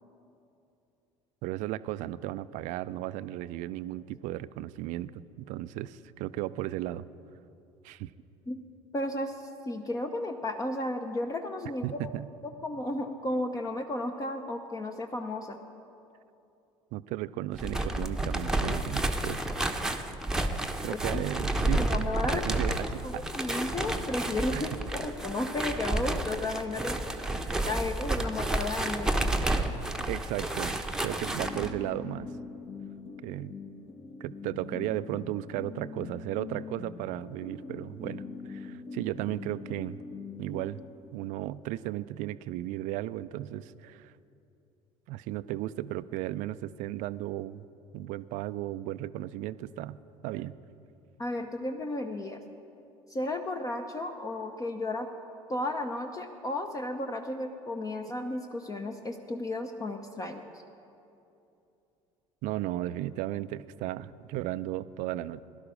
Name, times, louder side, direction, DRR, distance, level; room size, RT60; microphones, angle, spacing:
voice 1, 1.4-5.1 5.4-7.1 7.8-8.1 11.8-12.3 16.9-19.5 20.8-21.9 22.3-23.3 24.5-24.7 30.1-32.3 33.2-33.6 34.2-40.0 40.4-40.8 41.1-44.1 45.1-47.6 47.9-50.0 50.2-50.6 62.4-65.4, right 15 dB, 50° right, 16 dB, 0.4 m, -35 dB
voice 2, 8.9-12.0 12.4-15.6 20.9-21.2 21.8-22.4 23.0-27.0 27.5-29.1 51.2-52.4 53.1-55.1 55.5-60.5, left 2 dB, 20° left, 5 dB, 0.9 m, -33 dB
sound 1, 17.5-31.7, right 2 dB, 5° right, 1.0 m, -31 dB
sound 2, 31.2-41.3, left 4 dB, 40° left, 1.2 m, -43 dB
17.0 x 11.5 x 5.1 m, 2.7 s
figure-of-eight pair, 65°, 16 cm